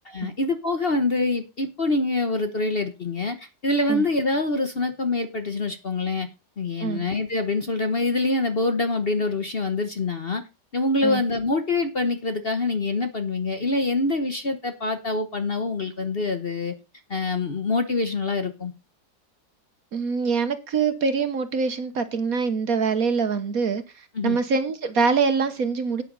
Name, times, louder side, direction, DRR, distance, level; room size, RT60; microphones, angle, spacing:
voice 1, 0.0-6.3 6.6-10.4 10.7-16.7 17.1-18.7 24.1-24.4, left 2 dB, 40° left, 1.1 m, -25 dB
voice 2, 19.9-26.0, right 5 dB, 55° right, 1.4 m, -24 dB
12.5 x 9.2 x 3.9 m
omnidirectional pair, 2.0 m